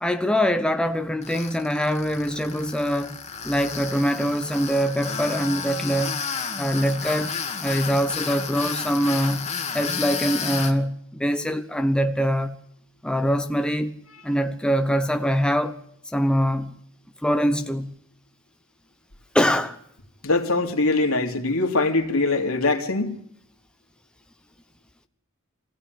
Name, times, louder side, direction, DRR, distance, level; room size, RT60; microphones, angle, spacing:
voice 1, 0.0-3.2 3.4-6.2 6.6-7.3 7.6-12.6 13.0-13.9 14.2-15.8 16.1-16.8 17.2-17.9 19.3-19.8, equal, 5° left, 0.9 m, -23 dB
Tools, 1.2-10.7, left 6 dB, 30° left, 2.2 m, -32 dB
voice 2, 20.2-23.1, left 3 dB, 70° left, 3.1 m, -22 dB
24.5 x 16.0 x 9.6 m
head